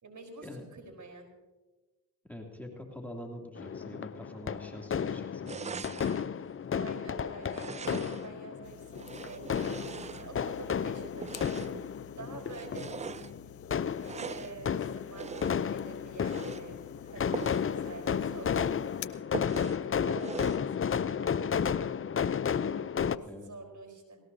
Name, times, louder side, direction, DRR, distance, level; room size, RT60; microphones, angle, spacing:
voice 1, 0.0-1.3 6.7-9.8 10.2-11.9 12.2-13.3 14.1-18.8 19.8-21.5 22.7-24.2, right 3 dB, 45° right, 3 dB, 4.3 m, -47 dB
voice 2, 2.3-6.0 23.2-23.5, left 1 dB, 5° left, 1 dB, 2.8 m, -45 dB
sound 1, 3.6-23.2, left 7 dB, 30° left, 0.6 m, -33 dB
sound 2, 5.5-6.3 7.4-8.4 8.9-10.6 11.2-11.9 12.5-13.3 14.0-14.6 15.2-15.7 16.2-16.7 17.3-17.7 18.1-18.2 18.5-18.6 19.3-19.8 20.2-20.7, right 6 dB, 20° right, 0.3 m, -41 dB
sound 3, 8.6-19.1, left 12 dB, 90° left, 0.6 m, -52 dB
19.0 x 18.0 x 2.8 m, 1.2 s
hypercardioid pair, 40°, 40 cm